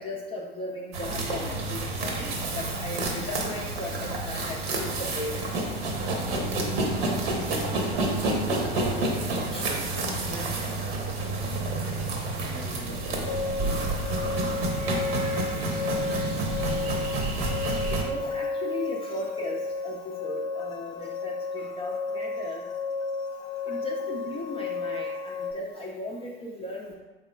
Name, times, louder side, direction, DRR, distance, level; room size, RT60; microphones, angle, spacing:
voice 1, 0.0-5.5 9.5-9.7 14.1-14.2 14.6-14.7 15.9-16.3 17.9-22.6 23.7-26.9, left 1 dB, 20° left, -1 dB, 0.4 m, -37 dB
sound 1, 0.9-18.0, right 2 dB, 70° right, 0.8 m, -29 dB
voice 2, 8.0-8.4 8.9-13.5, right 3 dB, 30° right, 1 dB, 0.7 m, -43 dB
sound 2, 13.3-25.5, left 4 dB, 55° left, 0.6 m, -32 dB
4.6 x 3.6 x 2.2 m, 1.2 s
figure-of-eight pair, 75°, 31 cm